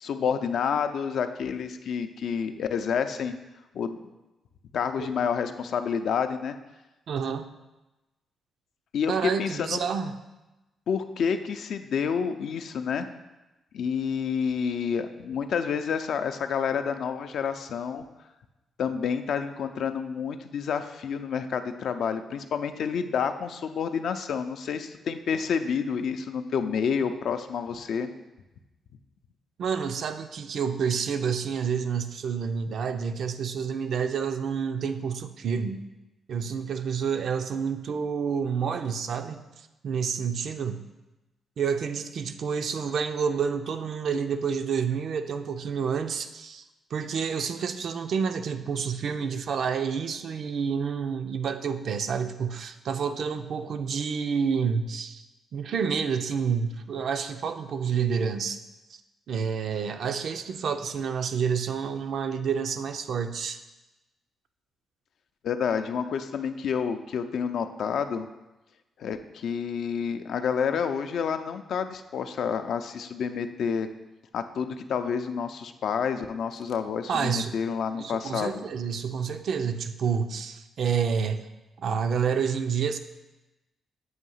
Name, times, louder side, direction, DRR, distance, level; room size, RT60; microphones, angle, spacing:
voice 1, 0.0-3.3 3.7-4.0 4.7-6.6 8.9-9.8 10.9-13.1 13.7-18.0 18.8-28.1 65.4-68.3 69.0-73.9 74.3-78.6, left 6 dB, 75° left, 8 dB, 0.4 m, -29 dB
voice 2, 7.1-7.5 9.1-10.2 29.6-35.8 36.3-40.9 41.6-46.6 46.9-55.2 55.5-58.6 58.9-59.0 59.3-63.6 77.1-77.6 78.0-81.5 81.8-83.0, right 6 dB, 65° right, 8 dB, 0.4 m, -29 dB
7.8 x 2.8 x 5.5 m, 1.0 s
cardioid pair, 90°, 0 cm